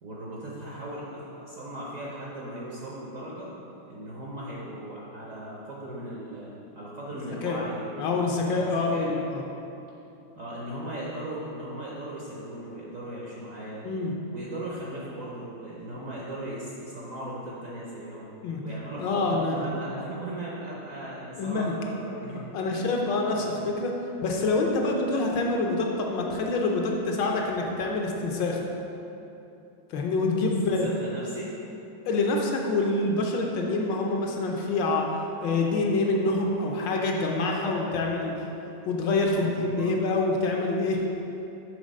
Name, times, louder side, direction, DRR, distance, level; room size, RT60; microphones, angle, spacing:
voice 1, 0.0-3.5 3.9-9.1 10.4-13.9 14.3-18.3 18.6-23.6 30.8-31.5 37.4-37.9 39.3-40.0, right 1 dB, 60° right, -5 dB, 0.9 m, -38 dB
voice 2, 8.0-9.4 13.8-14.1 18.4-18.6 19.0-19.6 21.4-21.7 22.5-23.9 24.2-28.6 29.9-30.9 32.0-35.1 35.4-38.3 38.9-41.0, left 3 dB, 70° left, 0 dB, 1.3 m, -26 dB
6.4 x 3.8 x 5.2 m, 2.9 s
omnidirectional pair, 2.2 m